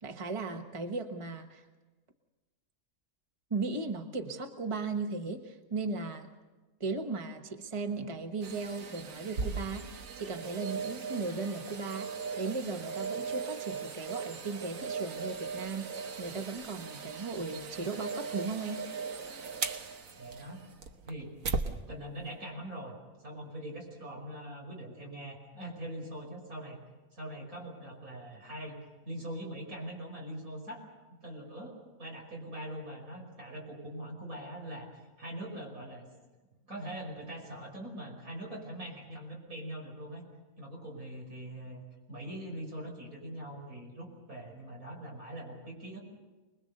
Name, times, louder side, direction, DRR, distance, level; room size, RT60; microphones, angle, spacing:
voice 1, 0.0-1.6 3.5-6.3 6.8-18.9, right 3 dB, 25° right, 6 dB, 1.3 m, -37 dB
sound 1, 8.4-21.7 22.2-22.3, right 5 dB, 70° right, 1.6 m, -38 dB
voice 2, 20.2-20.6 21.1-21.3 21.9-26.8 27.1-36.1 36.7-40.2 40.6-46.0, right 1 dB, 85° right, 0 dB, 6.1 m, -42 dB
25.0 x 21.5 x 6.7 m, 1.2 s
omnidirectional pair, 1.5 m